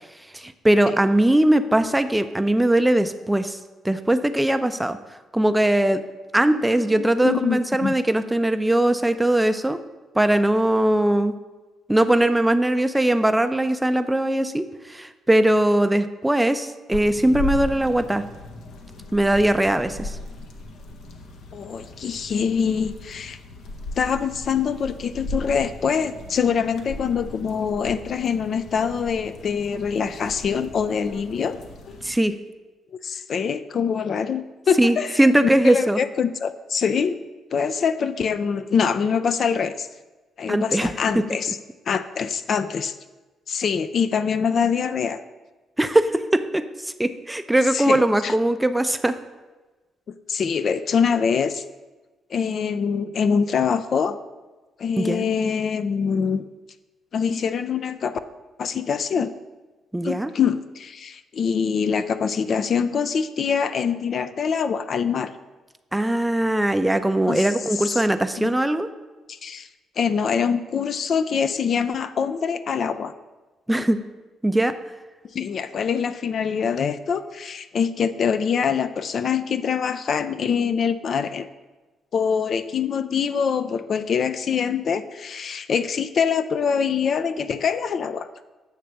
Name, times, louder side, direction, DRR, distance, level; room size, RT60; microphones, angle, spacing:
voice 1, 0.3-3.6 3.8-5.0 5.3-6.0 6.3-9.8 10.1-11.3 11.9-18.2 19.1-20.2 32.0-32.3 34.8-36.0 40.5-40.9 45.8-49.1 55.0-55.3 59.9-60.3 65.9-68.9 73.7-74.0 74.4-74.7, right 1 dB, 10° right, 10 dB, 0.4 m, -20 dB
voice 2, 6.9-7.9 21.5-23.4 24.0-31.6 33.0-35.2 35.6-37.2 37.5-39.9 40.4-41.6 41.9-42.9 43.5-45.2 47.7-48.3 50.3-51.6 52.3-54.2 54.8-56.5 57.1-58.2 58.6-59.3 60.0-65.3 67.3-68.0 68.4-68.5 69.3-69.7 70.0-73.1 75.3-81.5 82.1-88.3, left 6 dB, 55° left, 11 dB, 0.4 m, -24 dB
sound 1, 16.9-32.1, left 2 dB, 70° left, 0.9 m, -37 dB
8.2 x 3.3 x 6.4 m, 1.2 s
cardioid pair, 90°, 0 cm